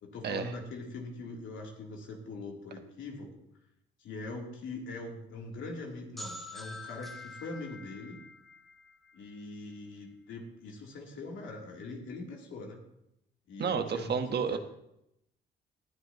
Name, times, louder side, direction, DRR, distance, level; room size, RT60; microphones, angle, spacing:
voice 1, 0.0-3.3 4.0-8.2 9.1-12.8 13.5-14.6, left 3 dB, 75° left, -1 dB, 3.3 m, -42 dB
sound 1, 6.2-9.8, left 2 dB, ahead, 1.3 m, -46 dB
voice 2, 13.6-14.6, right 6 dB, 55° right, 6 dB, 1.3 m, -31 dB
19.0 x 11.5 x 3.0 m, 0.81 s
cardioid pair, 90°, 20 cm